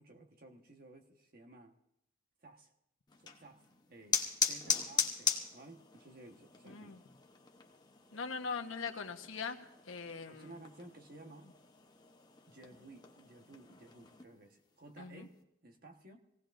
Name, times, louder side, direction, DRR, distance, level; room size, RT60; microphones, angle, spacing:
voice 1, 0.0-1.7 2.4-2.7 3.2-3.6 3.9-7.0 10.3-11.5 12.5-15.4 15.6-16.2, right 2 dB, 45° right, 3 dB, 1.3 m, -55 dB
sound 1, 3.1-14.2, left 6 dB, 20° left, 0.9 m, -40 dB
voice 2, 6.6-7.0 8.1-9.6 9.8-10.6 15.0-15.3, left 5 dB, 85° left, 4 dB, 1.2 m, -41 dB
24.5 x 17.5 x 2.6 m, 0.81 s
head